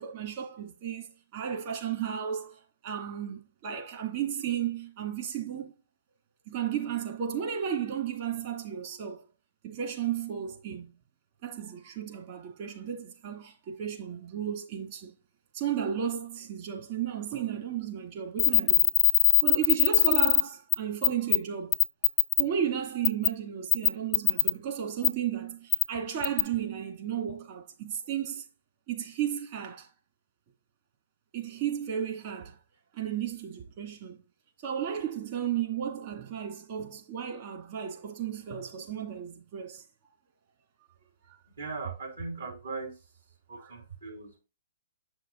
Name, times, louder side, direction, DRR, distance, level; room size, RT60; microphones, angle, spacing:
voice 1, 0.0-5.7 6.5-9.2 9.6-10.9 11.4-15.1 15.5-18.9 19.4-21.8 22.4-28.4 28.9-29.9 31.3-32.6 32.9-34.2 34.6-39.8 41.3-41.4 43.6-43.7, right 9 dB, 45° right, 2.3 m, -34 dB
sound 1, 18.4-20.4 20.7-20.8 21.0-21.4 21.7-22.4 23.0-23.3 23.7-24.5 25.0-25.1 25.7-25.8 26.2-26.4, left 16 dB, 20° left, 0.4 m, -21 dB
voice 2, 41.5-43.0 43.5-44.4, right 4 dB, 75° right, 3.4 m, -38 dB
7.9 x 6.3 x 2.5 m
hypercardioid pair, 130°, 0 cm